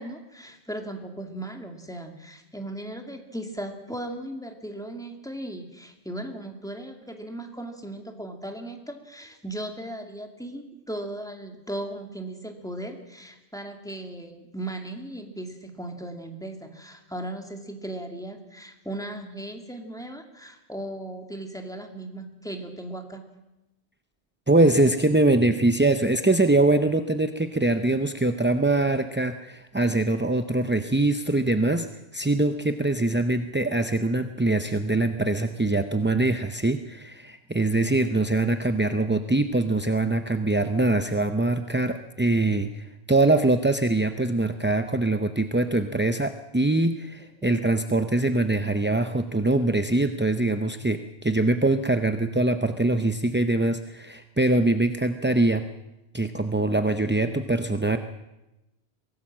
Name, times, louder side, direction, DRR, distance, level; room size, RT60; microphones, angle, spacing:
voice 1, 0.0-23.2 47.4-47.6, right 1 dB, 5° left, 4 dB, 2.3 m, -37 dB
voice 2, 24.5-31.9 32.1-55.7 56.1-58.0, right 2 dB, 15° right, 8 dB, 0.5 m, -23 dB
23.5 x 17.5 x 7.4 m, 0.97 s
omnidirectional pair, 1.2 m